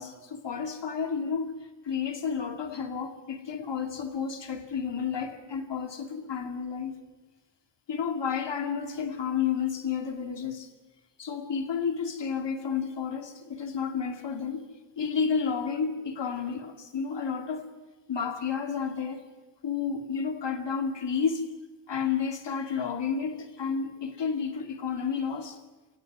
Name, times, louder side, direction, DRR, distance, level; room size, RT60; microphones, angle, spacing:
voice 1, 0.0-1.5 1.8-6.9 7.9-10.7 11.2-14.6 15.0-17.7 18.1-19.2 19.6-21.5 21.9-25.6, left 6 dB, 65° left, 2.3 m, -31 dB
28.5 x 16.0 x 6.0 m
cardioid pair, 85°, 46 cm